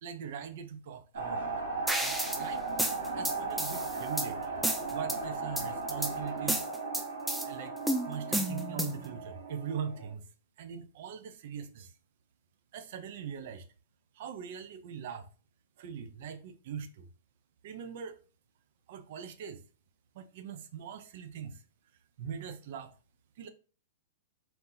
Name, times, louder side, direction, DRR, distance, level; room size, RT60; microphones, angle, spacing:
voice 1, 0.0-1.5 2.0-2.6 3.1-4.5 4.9-6.7 7.4-7.7 8.0-10.2 10.6-11.9 12.7-13.6 14.1-15.3 15.8-17.1 17.6-18.2 18.9-19.6 20.1-21.6 22.2-22.9 23.4-23.5, right 7 dB, 55° right, 0.7 m, -41 dB
sound 1, 1.1-10.1, right 3 dB, 90° right, 2.3 m, -37 dB
sound 2, 1.9-2.4 2.8-4.3 4.6-5.2 5.6-6.1 6.5-7.5 7.9-9.1, right 1 dB, 5° right, 0.4 m, -31 dB
4.4 x 2.7 x 3.9 m
hypercardioid pair, 140°, 0 cm